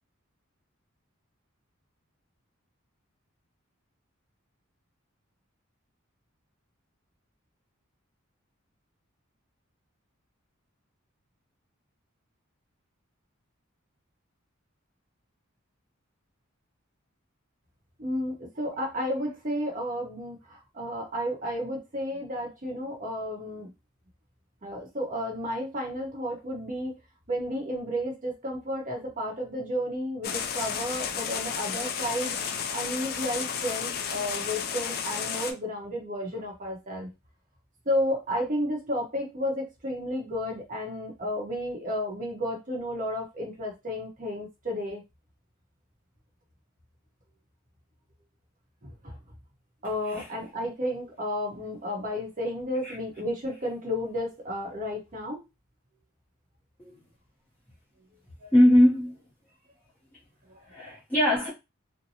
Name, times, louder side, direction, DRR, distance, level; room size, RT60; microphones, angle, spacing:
voice 1, 18.0-23.7 24.6-27.0 27.3-32.3 32.7-37.1 37.8-45.0 48.8-49.2 49.8-55.4 58.4-58.5 60.5-60.6, equal, 40° right, 1.0 m, -32 dB
sound 1, 30.2-35.5, left 7 dB, 50° left, 0.4 m, -32 dB
voice 2, 58.5-59.2 60.7-61.5, left 1 dB, 5° left, 0.8 m, -21 dB
2.6 x 2.2 x 2.8 m
head